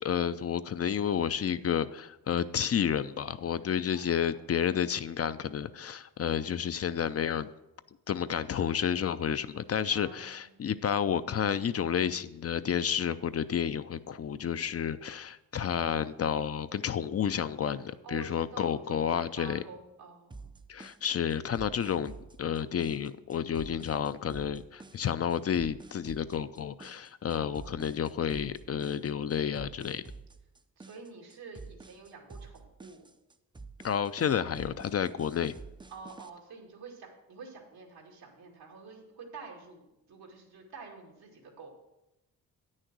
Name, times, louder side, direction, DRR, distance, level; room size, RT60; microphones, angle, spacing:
voice 1, 0.0-7.5 8.1-19.6 20.7-22.1 22.4-30.0 33.8-35.6, left 8 dB, 40° left, 13 dB, 0.5 m, -30 dB
voice 2, 3.9-4.3 9.9-10.5 18.0-20.6 27.2-27.8 30.8-33.1 35.9-41.7, right 4 dB, 90° right, 0 dB, 2.3 m, -48 dB
sound 1, 20.3-36.3, right 3 dB, 15° right, 0.4 m, -49 dB
9.1 x 6.5 x 6.1 m, 0.93 s
cardioid pair, 80°, 37 cm